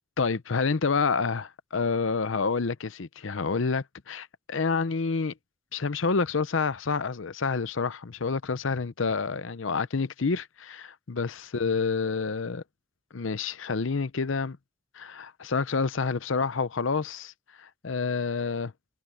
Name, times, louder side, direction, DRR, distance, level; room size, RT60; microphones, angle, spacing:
voice 1, 0.2-5.3 5.7-12.6 13.1-14.6 15.0-17.3 17.6-18.7, left 4 dB, 70° left, 0.7 m, -28 dB
head